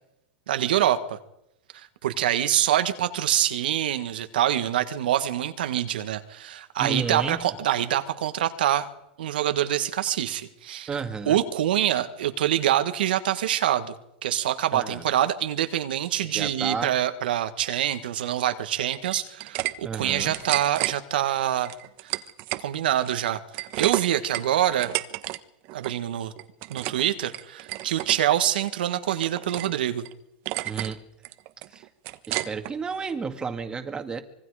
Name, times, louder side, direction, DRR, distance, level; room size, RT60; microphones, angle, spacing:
voice 1, 0.5-1.2 1.7-8.9 9.2-10.9 11.2-13.9 14.2-21.7 22.0-22.1 22.6-24.9 25.7-26.3 26.7-30.1, right 11 dB, 85° right, 9 dB, 1.6 m, -25 dB
voice 2, 6.8-7.4 10.9-11.4 14.7-15.0 16.3-16.9 19.8-20.4 30.6-31.0 31.7-31.8 32.3-34.2, right 5 dB, 15° right, 6 dB, 2.0 m, -32 dB
sound 1, 18.9-19.7 20.0-20.9 21.6-22.7 23.0-25.4 25.6-26.0 26.4-27.0 27.3-28.2 28.6-29.7 30.0-30.1 30.5-30.9 31.2-32.7, right 18 dB, 50° right, 1.2 m, -31 dB
25.5 x 22.0 x 5.0 m, 0.85 s
supercardioid pair, 130°, 5 cm